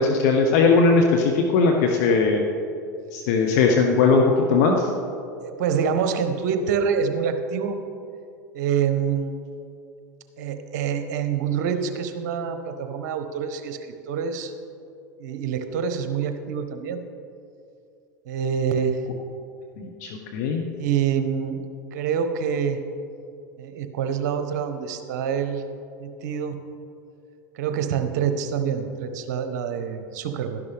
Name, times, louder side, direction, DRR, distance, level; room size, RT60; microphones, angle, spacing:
voice 1, 0.0-2.4 3.1-4.9 19.8-20.6, left 4 dB, 60° left, 2 dB, 1.0 m, -19 dB
voice 2, 5.4-7.8 8.5-9.4 10.4-14.5 15.2-17.0 18.3-19.0 20.7-21.6 21.9-22.8 23.6-25.6 26.0-26.6 27.6-30.6, right 7 dB, 60° right, 8 dB, 1.0 m, -26 dB
12.0 x 11.0 x 3.5 m, 2.5 s
hypercardioid pair, 85°, 10 cm